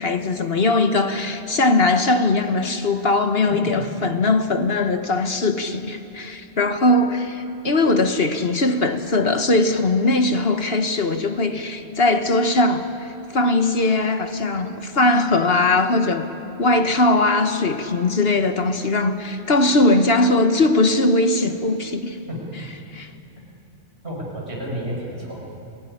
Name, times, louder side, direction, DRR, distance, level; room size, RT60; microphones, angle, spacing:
voice 1, 0.0-16.3 16.6-22.2 22.9-23.1, left 2 dB, 55° left, 7 dB, 1.5 m, -20 dB
voice 2, 3.4-3.8 22.3-22.7 24.0-25.4, equal, 60° right, -3 dB, 6.6 m, -31 dB
29.0 x 19.5 x 9.9 m, 2.6 s
omnidirectional pair, 1.2 m